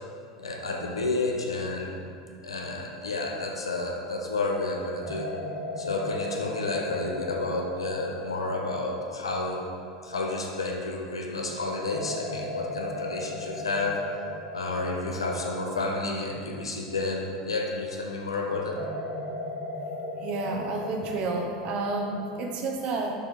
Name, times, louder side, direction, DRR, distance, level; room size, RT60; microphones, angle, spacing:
voice 1, 0.4-2.0 2.4-5.3 5.8-9.7 10.0-14.0 14.5-18.8, left 3 dB, 80° left, 0 dB, 0.8 m, -30 dB
sound 1, 4.0-4.1 5.0-11.0 11.9-17.9 18.8-22.7, left 1 dB, 60° right, 1.6 m, -38 dB
voice 2, 20.2-23.1, right 3 dB, 40° right, 1 dB, 0.9 m, -30 dB
6.8 x 4.8 x 3.7 m, 2.3 s
figure-of-eight pair, 80°, 3 cm